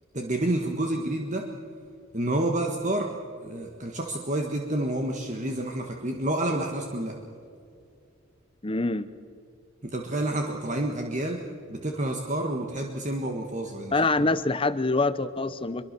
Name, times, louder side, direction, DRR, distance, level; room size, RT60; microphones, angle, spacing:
voice 1, 0.1-1.5 2.1-7.2 9.8-11.4 11.7-13.9, right 1 dB, 35° right, 2 dB, 1.5 m, -29 dB
voice 2, 8.6-9.1 13.9-15.8, left 3 dB, 25° left, 14 dB, 0.7 m, -25 dB
25.0 x 23.0 x 6.8 m, 2.5 s
head